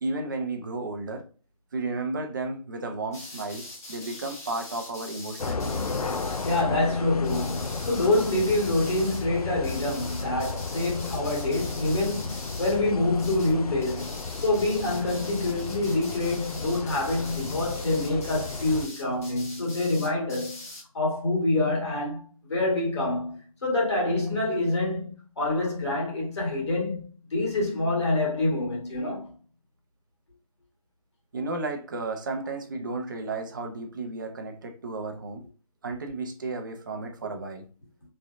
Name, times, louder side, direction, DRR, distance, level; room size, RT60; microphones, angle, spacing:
voice 1, 0.0-1.3 1.7-6.0 31.3-35.4 35.8-37.7, right 3 dB, 35° right, 0.6 m, -33 dB
sound 1, 3.1-6.6 7.2-9.2 9.6-12.8 13.1-13.5 13.8-20.8, left 2 dB, 25° left, 1.0 m, -43 dB
sound 2, 5.4-18.9, left 4 dB, 80° left, 0.4 m, -34 dB
voice 2, 6.4-20.6 20.9-29.3, left 2 dB, 50° left, 1.6 m, -26 dB
3.6 x 3.2 x 2.5 m
figure-of-eight pair, 150°, 19 cm